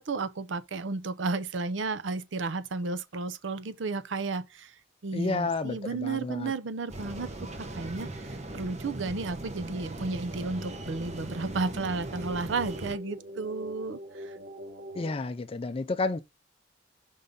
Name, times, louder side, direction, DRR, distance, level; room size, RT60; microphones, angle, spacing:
voice 1, 0.0-7.3 7.6-14.4, right 3 dB, 80° right, 0.6 m, -33 dB
voice 2, 5.1-6.5 15.0-16.2, left 3 dB, 30° left, 0.4 m, -31 dB
sound 1, 6.9-12.9, right 2 dB, 35° right, 1.0 m, -39 dB
sound 2, 9.7-15.1, equal, 60° right, 3.0 m, -45 dB
5.4 x 3.7 x 5.2 m
head